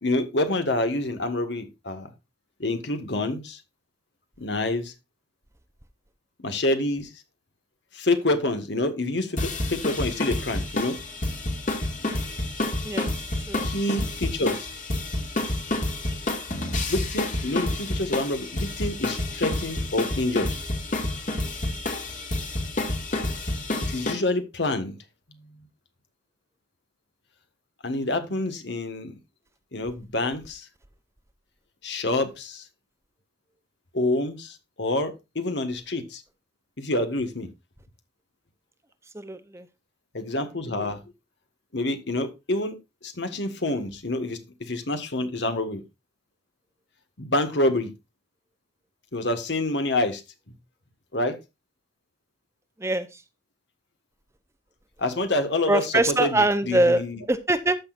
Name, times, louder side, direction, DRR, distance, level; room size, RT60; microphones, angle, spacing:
voice 1, 0.0-2.1 2.6-3.6 4.4-4.9 6.4-7.1 7.9-11.0 13.6-14.7 16.9-20.5 23.9-25.0 25.3-25.5 27.8-29.2 29.7-30.7 31.8-32.6 33.9-36.2 36.8-37.5 40.1-41.1 41.7-42.8 43.0-45.8 47.2-47.9 49.1-50.2 51.1-51.4 55.0-57.2, left 2 dB, 70° left, 1.7 m, -27 dB
sound 1, 9.4-24.1, left 1 dB, 45° left, 2.2 m, -29 dB
voice 2, 12.8-13.1 13.5-13.7 39.1-39.7 52.8-53.2 55.7-57.0 57.3-57.8, right 2 dB, 15° right, 0.7 m, -23 dB
14.0 x 6.2 x 2.5 m
head